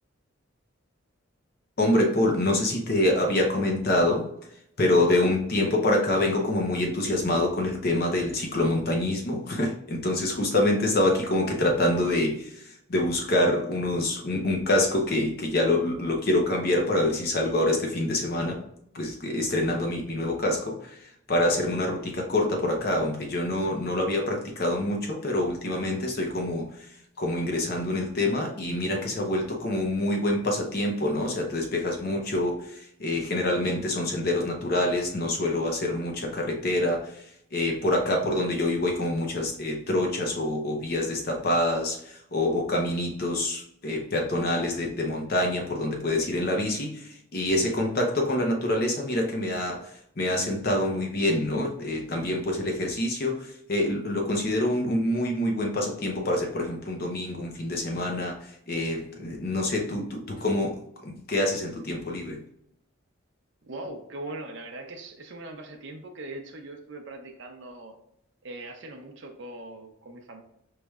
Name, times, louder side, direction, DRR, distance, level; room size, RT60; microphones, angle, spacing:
voice 1, 1.8-4.3 4.8-18.6 18.9-62.4, left 1 dB, 50° left, 1 dB, 0.8 m, -26 dB
voice 2, 63.6-67.9 68.4-70.4, right 2 dB, 60° right, 2 dB, 0.6 m, -40 dB
4.8 x 3.1 x 2.3 m, 0.74 s
head